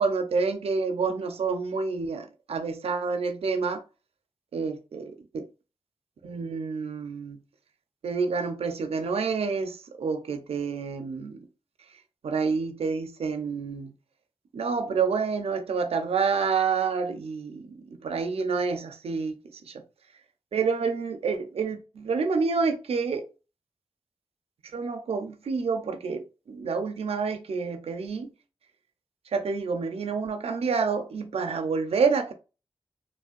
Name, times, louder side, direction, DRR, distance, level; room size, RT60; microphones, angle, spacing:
voice 1, 0.0-3.8 4.5-5.5 6.2-7.4 8.0-11.4 12.2-13.9 14.5-19.3 19.7-19.8 20.5-23.3 24.7-28.3 29.3-32.3, right 5 dB, 85° right, 0.5 m, -28 dB
3.6 x 2.2 x 2.5 m
cardioid pair, 40°, 10 cm